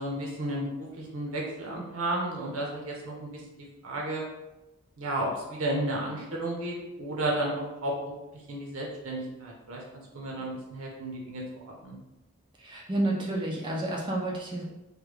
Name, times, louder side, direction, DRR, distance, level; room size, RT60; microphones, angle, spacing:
voice 1, 0.0-3.3 3.8-4.2 5.0-8.1 8.5-9.8 10.1-11.4 11.8-12.0, right 1 dB, 85° right, -2 dB, 0.9 m, -32 dB
voice 2, 12.6-14.6, right 1 dB, 25° right, -2 dB, 0.4 m, -30 dB
3.3 x 2.2 x 3.3 m, 0.98 s
head